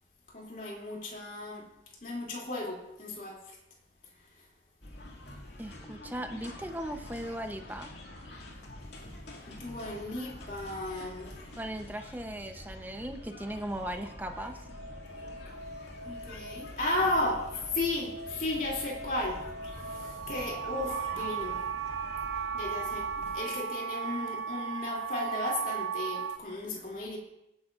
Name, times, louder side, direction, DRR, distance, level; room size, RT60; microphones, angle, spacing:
voice 1, 0.3-1.7 2.0-3.6 9.5-11.3 16.0-17.4 17.7-19.4 19.7-21.6 22.5-23.1 23.3-27.2, left 2 dB, 50° left, -2 dB, 2.7 m, -34 dB
sound 1, 4.8-23.4, left 1 dB, 75° left, 2.2 m, -46 dB
voice 2, 5.6-7.9 11.6-14.6, right 1 dB, 10° right, 5 dB, 0.8 m, -38 dB
sound 2, 13.6-26.4, right 6 dB, 80° right, 0.5 m, -37 dB
21.0 x 9.9 x 2.5 m, 0.88 s
head